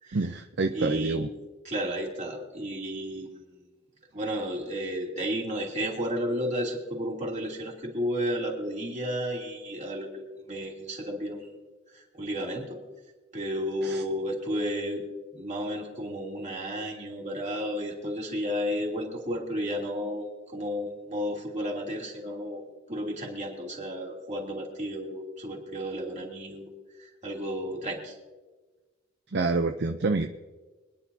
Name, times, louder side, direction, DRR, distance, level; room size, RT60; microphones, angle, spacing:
voice 1, 0.1-1.3 13.8-14.0 29.3-30.3, right 3 dB, 60° right, 6 dB, 0.6 m, -27 dB
voice 2, 0.7-1.2 1.6-3.3 4.1-11.5 11.9-12.8 13.3-15.0 15.3-22.6 22.9-26.7 27.0-28.1, equal, 40° right, -1 dB, 3.0 m, -32 dB
25.5 x 10.0 x 2.8 m, 1.3 s
head